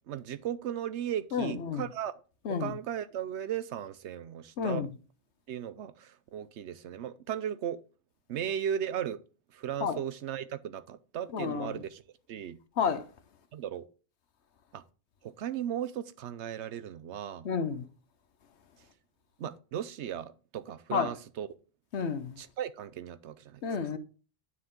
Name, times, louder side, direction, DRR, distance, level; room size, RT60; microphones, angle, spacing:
voice 1, 0.1-2.1 2.5-4.9 5.5-7.8 8.3-9.2 9.5-12.0 12.3-12.6 13.5-13.9 14.7-14.8 15.2-17.5 19.4-21.5 22.4-23.6, right 9 dB, 85° right, 1.0 m, -36 dB
voice 2, 1.3-1.8 2.4-2.8 4.6-4.9 9.8-10.0 11.3-11.8 12.8-13.1 17.4-17.9 20.9-21.1 21.9-22.4 23.6-24.0, left 6 dB, 75° left, 1.2 m, -31 dB
9.7 x 6.2 x 3.8 m
omnidirectional pair, 1.1 m